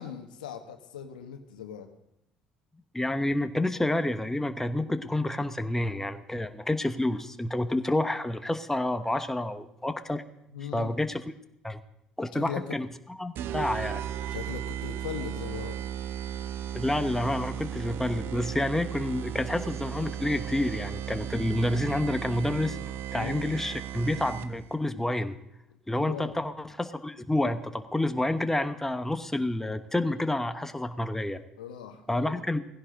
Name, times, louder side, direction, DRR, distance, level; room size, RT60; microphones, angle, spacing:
voice 1, 0.0-1.9 10.5-11.0 12.3-12.8 14.3-15.8 23.1-23.5 26.0-26.3 31.6-32.4, left 8 dB, 80° left, 6 dB, 1.4 m, -39 dB
voice 2, 2.9-10.2 10.7-11.2 11.6-11.8 12.2-12.9 13.2-14.0 16.7-22.8 23.1-25.4 25.9-31.4 32.1-32.6, left 1 dB, 10° left, 9 dB, 1.3 m, -29 dB
sound 1, 13.4-24.7, right 10 dB, 55° right, 0.7 m, -35 dB
18.5 x 16.0 x 3.9 m, 0.81 s
hypercardioid pair, 55°, 4 cm